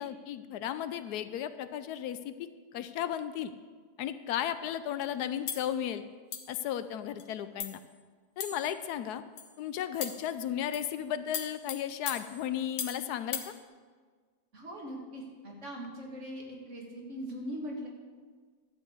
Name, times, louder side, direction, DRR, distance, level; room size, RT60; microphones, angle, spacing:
voice 1, 0.0-3.5 4.0-6.0 6.5-7.8 8.4-9.2 9.6-13.5, left 10 dB, 80° left, 12 dB, 1.1 m, -35 dB
sound 1, 5.5-5.7 6.3-6.6 7.2-7.3 7.6-7.8 8.4-8.8 9.4-9.5 10.0-10.3 10.7-10.9 11.3-13.0 13.3-13.5, left 7 dB, 60° left, 1.3 m, -38 dB
voice 2, 14.5-17.9, equal, 45° right, -1 dB, 2.3 m, -41 dB
12.5 x 5.4 x 8.1 m, 1.5 s
omnidirectional pair, 1.7 m